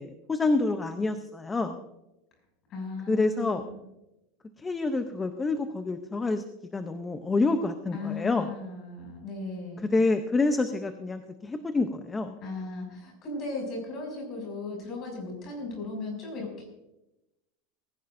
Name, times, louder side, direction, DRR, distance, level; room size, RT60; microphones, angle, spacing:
voice 1, 0.0-1.8 3.1-3.6 4.6-6.4 6.7-8.5 9.9-12.4, left 3 dB, 10° left, 8 dB, 0.6 m, -27 dB
voice 2, 2.7-3.8 7.9-9.9 12.4-16.6, left 3 dB, 30° left, 0 dB, 6.4 m, -37 dB
19.5 x 16.0 x 2.6 m, 0.93 s
supercardioid pair, 170°, 0 cm